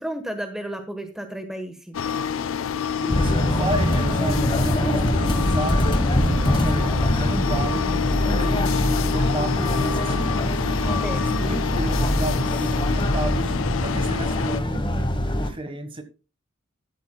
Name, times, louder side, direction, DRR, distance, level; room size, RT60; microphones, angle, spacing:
voice 1, 0.0-2.0 10.9-11.4 14.7-15.1, right 1 dB, 5° right, 1.2 m, -33 dB
sound 1, 1.9-14.6, left 7 dB, 80° left, 0.5 m, -28 dB
voice 2, 3.0-10.5 11.2-16.0, right 1 dB, 25° right, 1.4 m, -32 dB
sound 2, 3.1-15.5, left 1 dB, 25° left, 1.3 m, -23 dB
13.5 x 12.0 x 2.3 m
head